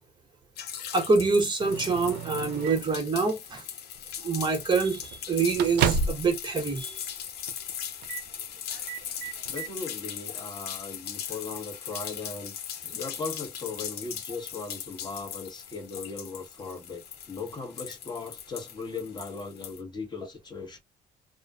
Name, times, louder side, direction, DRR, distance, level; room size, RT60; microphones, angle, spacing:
sound 1, 0.6-19.8, left 9 dB, 75° left, 0.7 m, -39 dB
voice 1, 0.9-3.6 4.2-7.0, right 4 dB, 25° right, 0.9 m, -26 dB
Microwave oven, 1.6-3.0 3.9-4.2 4.5-4.6 5.0-6.4 6.7-6.8 7.5-7.7 8.0-8.3 8.7-9.7, right 6 dB, 75° right, 0.4 m, -31 dB
voice 2, 9.5-20.8, left 4 dB, 25° left, 1.1 m, -38 dB
2.4 x 2.2 x 2.3 m
cardioid pair, 110°, 17 cm